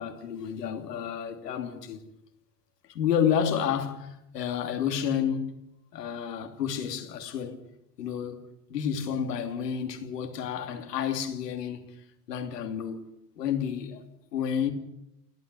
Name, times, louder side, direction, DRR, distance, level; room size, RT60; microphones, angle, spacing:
voice 1, 0.0-2.0 2.9-5.5 5.9-7.6 8.0-12.0 12.3-13.0 13.4-14.0 14.3-14.7, left 8 dB, 80° left, 3.2 m, -30 dB
29.0 x 9.7 x 9.8 m
hypercardioid pair, 105°, 47 cm